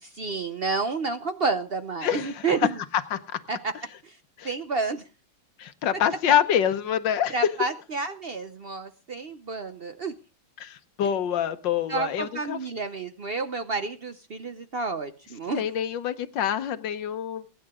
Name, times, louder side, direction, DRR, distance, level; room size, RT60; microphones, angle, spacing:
voice 1, 0.0-2.8 3.5-3.7 4.0-4.2 4.4-5.0 7.3-10.1 11.9-15.6, right 4 dB, 65° right, 10 dB, 0.5 m, -30 dB
voice 2, 2.0-2.5 3.1-3.4 4.4-4.5 5.6-7.4 10.6-12.6 15.5-17.5, left 9 dB, 70° left, 12 dB, 1.6 m, -26 dB
22.5 x 9.9 x 3.7 m, 0.32 s
omnidirectional pair, 2.1 m